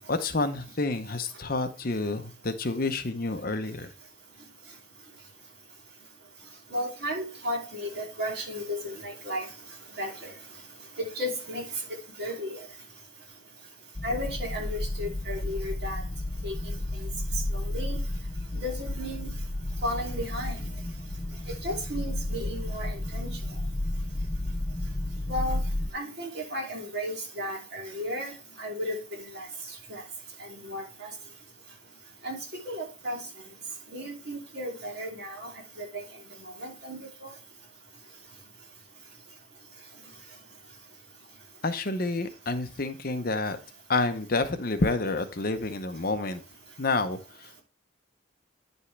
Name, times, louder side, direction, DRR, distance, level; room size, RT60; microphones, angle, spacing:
voice 1, 0.1-3.9 41.6-43.6 43.9-46.4 46.8-47.6, left 3 dB, 45° left, 9 dB, 0.8 m, -29 dB
voice 2, 6.7-9.5 10.0-10.3 11.1-11.6 12.2-12.6 14.0-16.0 16.4-16.5 17.0-17.1 17.5-18.0 18.5-19.3 19.8-20.6 21.6-23.3 25.3-25.6 25.9-28.3 28.6-28.9 29.3-29.5 29.9-30.0 30.6-31.1 32.2-32.4 32.7-33.2 33.9-35.5 35.8-35.9 36.6-37.3, equal, 50° right, -1 dB, 2.8 m, -34 dB
sound 1, 14.0-25.9, left 1 dB, 15° left, 0.4 m, -32 dB
9.6 x 5.4 x 3.3 m, 0.34 s
head